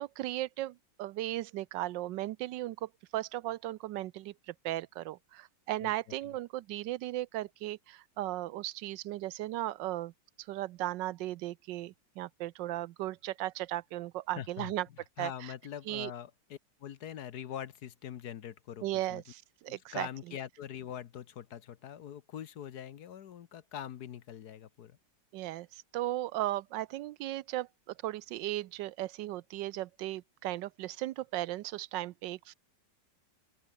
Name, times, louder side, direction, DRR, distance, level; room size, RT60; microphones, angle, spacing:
voice 1, 0.0-10.1 10.4-14.9 15.2-15.5 15.9-16.1 18.8-20.1 25.3-27.7 28.0-32.5, right 15 dB, 75° right, 1.2 m, -36 dB
voice 2, 14.4-14.7 15.2-19.2 19.7-25.0, left 9 dB, 60° left, 1.4 m, -43 dB
open air
omnidirectional pair, 2.0 m